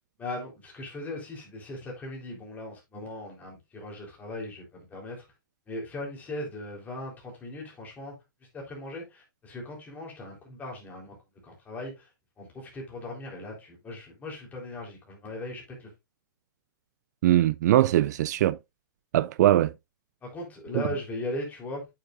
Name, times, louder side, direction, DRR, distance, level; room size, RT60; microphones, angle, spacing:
voice 1, 0.2-5.3 5.7-8.2 8.5-11.2 11.4-12.1 12.4-15.9 20.2-21.9, left 1 dB, 15° left, 3.8 m, -38 dB
voice 2, 17.2-18.6 19.1-19.7 20.7-20.8, right 13 dB, 55° right, 0.4 m, -21 dB
8.7 x 7.3 x 2.6 m
hypercardioid pair, 145°, 11 cm